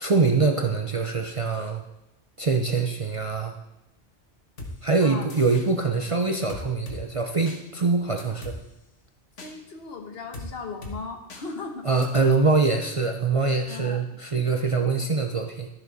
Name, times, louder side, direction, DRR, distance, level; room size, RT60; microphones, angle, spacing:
voice 1, 0.0-1.8 2.4-3.5 4.8-8.6 11.8-15.7, right 4 dB, 35° right, 3 dB, 0.6 m, -24 dB
sound 1, 4.6-4.7 5.3-5.7 6.5-7.0 7.5-7.6 8.2-8.6 9.4-9.5 10.3-10.5 10.8-11.0 11.3-11.4 12.0-12.1, left 2 dB, 85° left, 1.7 m, -38 dB
voice 2, 5.0-5.3 9.4-11.9 13.7-14.1, left 4 dB, 60° left, 3 dB, 1.3 m, -37 dB
12.5 x 6.8 x 4.1 m, 0.90 s
omnidirectional pair, 1.2 m